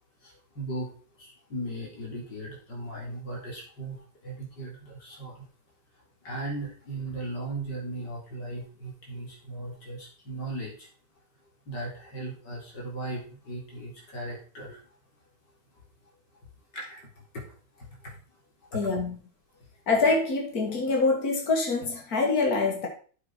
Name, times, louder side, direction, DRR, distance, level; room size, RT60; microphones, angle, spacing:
voice 1, 0.2-0.9 1.2-5.5 6.2-10.9 11.7-14.8 16.7-17.5 17.8-18.1 18.7-18.8 19.5-19.7, right 1 dB, 90° left, -1 dB, 4.2 m, -37 dB
voice 2, 18.7-19.2 19.9-22.9, left 3 dB, 60° left, 0 dB, 2.8 m, -25 dB
8.6 x 7.4 x 4.7 m, 0.40 s
omnidirectional pair, 1.8 m